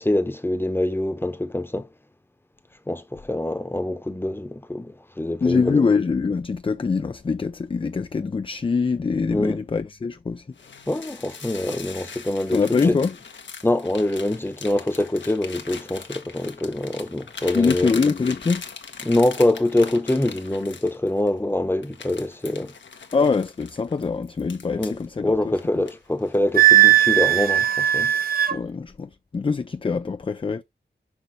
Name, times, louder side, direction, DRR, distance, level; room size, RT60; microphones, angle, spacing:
voice 1, 0.0-1.9 2.9-5.8 9.3-9.6 10.9-12.8 13.6-17.9 19.0-22.7 24.8-28.2, left 1 dB, 10° left, 0.9 m, -24 dB
voice 2, 5.4-10.5 12.5-13.2 17.5-18.6 23.1-25.6 28.5-30.6, left 4 dB, 30° left, 0.4 m, -23 dB
sound 1, 10.6-21.3 21.8-25.0 25.6-26.5 26.8-27.1 27.6-28.1, left 5 dB, 75° left, 1.1 m, -40 dB
Wind instrument woodwind instrument, 26.6-28.6, right 13 dB, 50° right, 0.8 m, -17 dB
6.2 x 5.4 x 3.2 m
cardioid pair, 65°, 19 cm